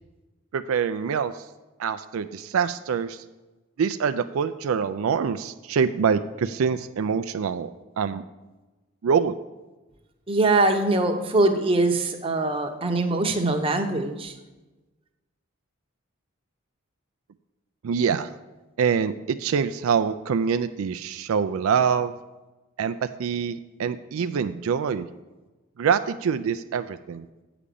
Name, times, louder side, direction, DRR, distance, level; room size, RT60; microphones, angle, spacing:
voice 1, 0.5-1.4 1.8-3.2 3.8-7.7 8.0-8.2 9.0-9.4 17.8-18.3 18.8-22.1 22.8-25.1 25.8-27.3, right 6 dB, 75° right, 11 dB, 0.4 m, -25 dB
voice 2, 10.3-14.3, right 2 dB, 25° right, 4 dB, 0.8 m, -22 dB
8.5 x 5.0 x 6.8 m, 1.1 s
head